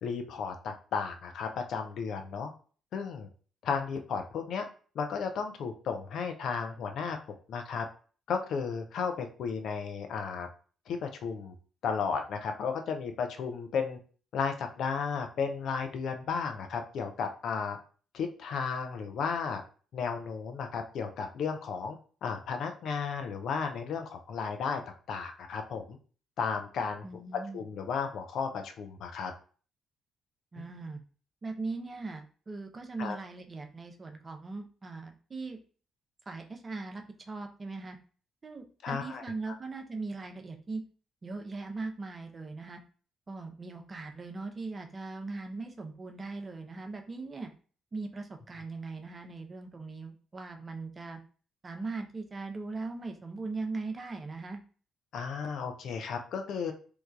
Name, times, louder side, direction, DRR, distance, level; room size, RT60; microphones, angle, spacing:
voice 1, 0.0-2.5 2.9-3.3 3.6-4.7 5.0-7.2 7.5-7.9 8.3-10.5 10.9-11.5 11.8-14.0 14.3-17.8 18.1-19.6 19.9-22.0 22.2-24.8 25.1-26.0 26.4-27.1 27.5-29.3 30.6-30.7 33.0-33.2 38.8-39.2 55.1-56.7, left 6 dB, 60° left, 5 dB, 0.4 m, -34 dB
voice 2, 27.0-27.6 30.5-31.0 31.4-35.6 36.3-38.0 38.4-40.8 41.2-42.8 43.3-47.5 47.9-51.2 51.6-54.6, right 3 dB, 35° right, 5 dB, 0.5 m, -39 dB
3.1 x 2.2 x 2.3 m, 0.40 s
figure-of-eight pair, 45°, 0 cm